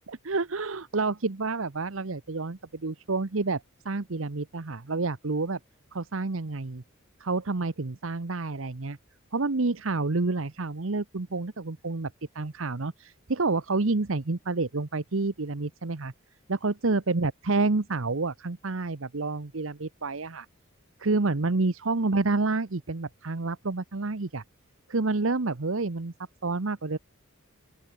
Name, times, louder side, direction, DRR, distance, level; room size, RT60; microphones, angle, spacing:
voice 1, 0.1-5.6 5.9-6.8 7.2-9.0 9.3-16.1 16.5-20.5 21.0-24.4 24.9-26.1 26.4-27.0, right 3 dB, 70° right, 1.0 m, -29 dB
open air
head